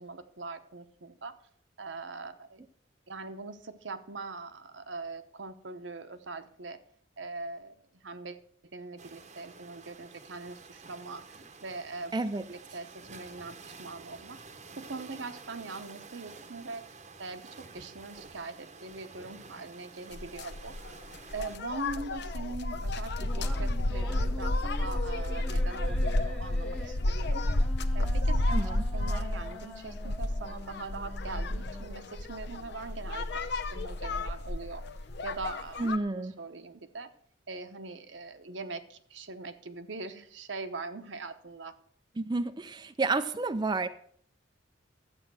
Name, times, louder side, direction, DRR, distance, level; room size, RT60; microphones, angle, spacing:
voice 1, 0.0-1.4 1.8-2.6 3.1-6.8 7.2-8.4 8.7-12.1 12.5-14.4 14.8-16.9 17.2-20.8 21.3-27.4 27.9-34.8 35.2-37.1 37.5-41.8, right 3 dB, 70° right, 9 dB, 1.0 m, -42 dB
sound 1, 9.0-21.6, right 4 dB, 40° right, 0.9 m, -50 dB
voice 2, 12.1-12.4 28.5-28.8 35.8-36.3 42.2-43.9, right 3 dB, 25° right, 8 dB, 0.4 m, -30 dB
sound 2, 20.1-36.0, left 1 dB, 60° left, 0.7 m, -31 dB
sound 3, 23.2-32.2, left 1 dB, 5° left, 0.9 m, -45 dB
12.0 x 8.4 x 6.1 m, 0.62 s
head